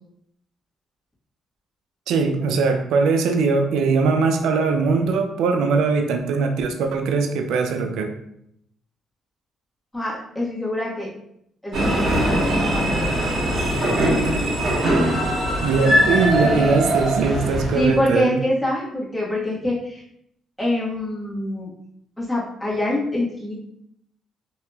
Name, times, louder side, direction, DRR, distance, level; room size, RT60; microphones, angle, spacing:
voice 1, 2.1-8.1 15.6-18.4, right 4 dB, 85° right, 5 dB, 0.4 m, -21 dB
voice 2, 9.9-11.1 11.6-13.2 15.8-16.0 16.4-16.8 17.7-20.0 20.6-21.7 22.2-23.6, left 1 dB, 10° left, -8 dB, 1.3 m, -25 dB
sound 1, 11.7-18.0, right 1 dB, 65° right, 1.2 m, -21 dB
2.8 x 2.8 x 2.3 m, 0.74 s
cardioid pair, 90°, 0 cm